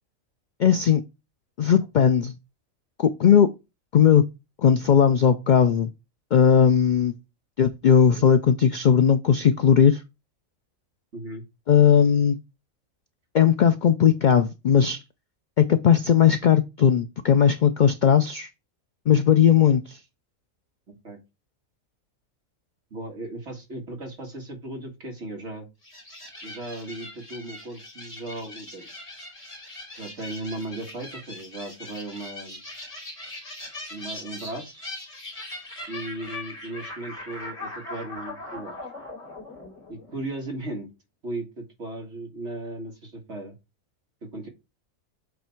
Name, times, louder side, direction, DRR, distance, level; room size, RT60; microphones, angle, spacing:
voice 1, 0.6-1.0 1.6-2.3 3.0-3.5 3.9-4.2 4.6-5.9 6.3-7.1 7.6-10.0 11.7-12.4 13.3-15.0 15.6-18.5 19.1-20.0, left 8 dB, 70° left, 10 dB, 0.4 m, -18 dB
voice 2, 11.1-11.4 20.9-21.2 22.9-25.7 26.4-28.9 29.9-32.6 33.9-34.9 35.9-38.9 39.9-40.9 41.2-43.6 44.2-44.5, right 2 dB, 55° right, 1 dB, 2.2 m, -36 dB
sound 1, 25.8-40.5, left 2 dB, 50° left, 3.1 m, -40 dB
7.7 x 3.4 x 4.4 m, 0.25 s
omnidirectional pair, 1.4 m